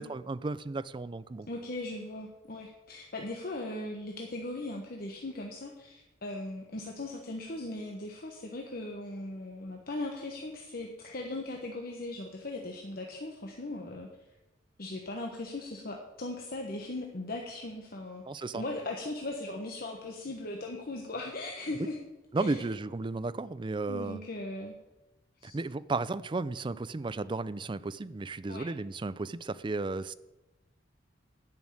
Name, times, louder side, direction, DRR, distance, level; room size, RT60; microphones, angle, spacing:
voice 1, 0.0-1.5 18.3-18.6 22.3-24.2 25.4-30.1, right 3 dB, 25° right, 15 dB, 0.4 m, -34 dB
voice 2, 1.5-14.1 14.8-22.0 22.4-22.6 23.9-24.8 25.4-25.6 28.5-28.7, left 2 dB, 50° left, 1 dB, 1.2 m, -39 dB
10.5 x 6.3 x 8.7 m, 1.0 s
head